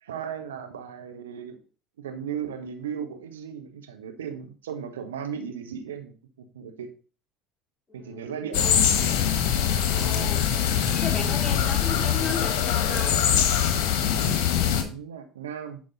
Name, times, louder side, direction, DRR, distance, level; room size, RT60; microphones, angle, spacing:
voice 1, 0.0-1.6 2.0-6.9 7.9-8.7 14.6-15.8, right 8 dB, 80° right, 7 dB, 0.9 m, -36 dB
voice 2, 7.9-8.8 9.6-10.4 10.7-13.2, left 4 dB, 20° left, -1 dB, 3.3 m, -36 dB
sound 1, 8.5-14.8, left 9 dB, 65° left, 1.4 m, -23 dB
10.5 x 5.2 x 3.9 m, 0.36 s
hypercardioid pair, 65°, 0 cm